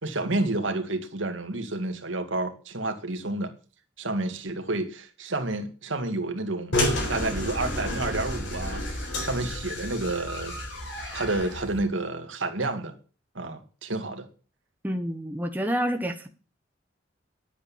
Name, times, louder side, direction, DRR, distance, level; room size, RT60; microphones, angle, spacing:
voice 1, 0.0-3.5 4.0-6.8 7.1-10.5 11.1-13.0 13.4-14.3, right 2 dB, 85° right, 2.2 m, -30 dB
sound 1, 6.7-11.8, left 1 dB, 70° left, 4.1 m, -30 dB
voice 2, 14.8-16.3, equal, 10° right, 1.2 m, -28 dB
11.0 x 8.4 x 7.2 m
head